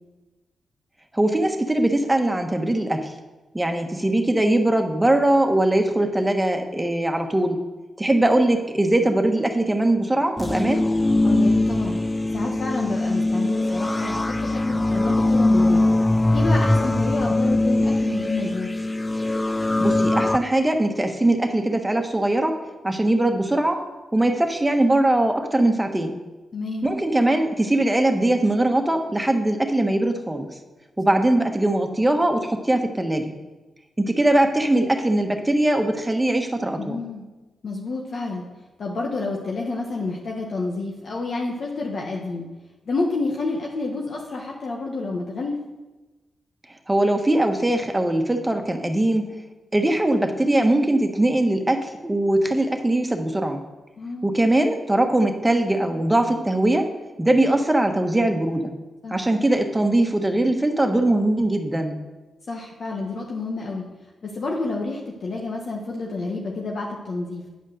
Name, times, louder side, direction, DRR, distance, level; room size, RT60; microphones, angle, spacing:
voice 1, 1.1-3.1 3.5-7.6 8.0-10.9 19.8-22.6 22.8-23.8 24.1-26.1 26.8-30.5 31.0-33.3 34.0-37.0 46.9-49.4 49.7-53.6 54.2-56.9 57.2-58.7 59.1-62.0, right 1 dB, 15° right, 5 dB, 1.3 m, -21 dB
sound 1, 10.4-20.4, left 2 dB, 20° left, 0.5 m, -21 dB
voice 2, 11.2-12.0 12.3-15.8 16.3-18.7 26.5-26.9 31.0-31.2 36.8-37.2 37.6-38.4 38.8-42.4 42.9-45.6 54.0-54.3 59.0-59.2 62.5-63.9 64.2-67.4, left 3 dB, 60° left, -1 dB, 1.2 m, -29 dB
9.2 x 5.4 x 6.4 m, 1.2 s
cardioid pair, 55°, 0 cm